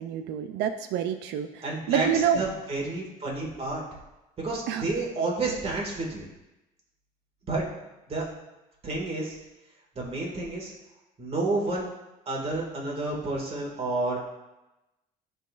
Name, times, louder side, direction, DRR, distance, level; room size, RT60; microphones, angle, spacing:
voice 1, 0.0-2.4 4.7-4.9, right 8 dB, 85° right, 8 dB, 0.4 m, -27 dB
voice 2, 1.6-2.1 2.3-3.8 4.4-6.2 7.5-7.6 8.1-8.2 8.8-9.4 10.0-10.7 11.2-11.9 12.3-14.3, right 2 dB, 35° right, -2 dB, 1.9 m, -30 dB
11.0 x 3.9 x 2.5 m, 0.98 s
cardioid pair, 110°, 17 cm